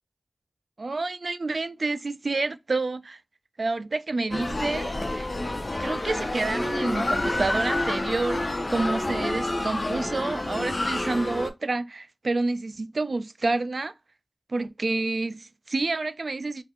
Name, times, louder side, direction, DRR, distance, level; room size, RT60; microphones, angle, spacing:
voice 1, 0.8-3.2 3.6-5.3 5.8-13.9 14.5-16.6, right 3 dB, 80° right, 0.3 m, -29 dB
sound 1, 4.3-11.5, left 1 dB, 50° left, 0.5 m, -28 dB
2.7 x 2.4 x 3.6 m
wide cardioid pair, 40°, 0 cm